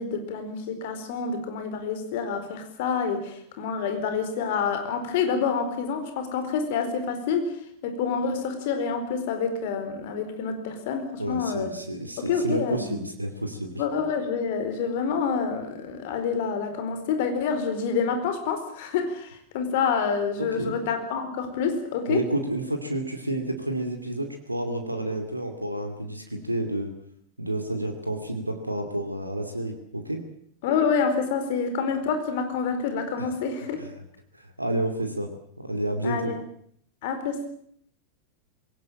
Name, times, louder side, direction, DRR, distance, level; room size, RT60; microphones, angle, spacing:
voice 1, 0.0-11.7 12.2-13.0 13.8-22.2 30.6-33.8 36.0-36.4 37.0-37.4, left 6 dB, 50° left, 8 dB, 4.5 m, -27 dB
voice 2, 11.2-13.7 20.4-20.7 22.1-26.9 27.4-30.2 33.8-33.9 34.3-35.3 35.6-36.3, right 1 dB, 85° right, 5 dB, 2.7 m, -30 dB
21.5 x 17.5 x 8.9 m, 0.65 s
figure-of-eight pair, 90°, 0 cm